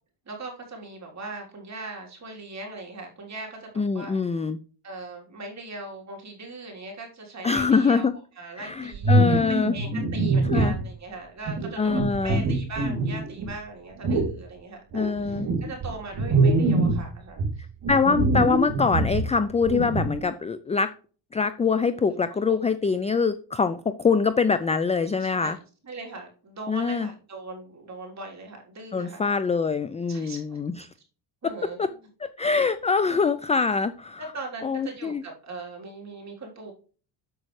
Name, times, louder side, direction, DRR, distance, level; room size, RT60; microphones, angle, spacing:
voice 1, 0.3-3.7 3.9-4.2 4.8-8.1 8.4-9.4 9.7-17.6 21.9-22.0 22.5-22.7 25.1-25.5 25.8-29.2 30.1-30.6 31.4-31.9 33.1-33.2 34.2-36.7, right 3 dB, 35° right, 0 dB, 3.5 m, -40 dB
voice 2, 3.8-4.6 7.4-8.1 8.6-9.8 10.5-10.8 11.8-12.4 14.9-15.5 17.9-20.9 21.3-25.6 26.7-27.1 28.9-30.9 31.4-31.5 31.8-31.9 32.2-34.2 34.6-35.2, left 5 dB, 15° left, 13 dB, 0.4 m, -24 dB
sound 1, 8.9-10.9 11.5-13.5 14.0-14.4 14.9-17.1 17.4-20.2, right 2 dB, 55° right, 2.8 m, -24 dB
8.1 x 7.6 x 3.2 m, 0.38 s
cardioid pair, 115°, 44 cm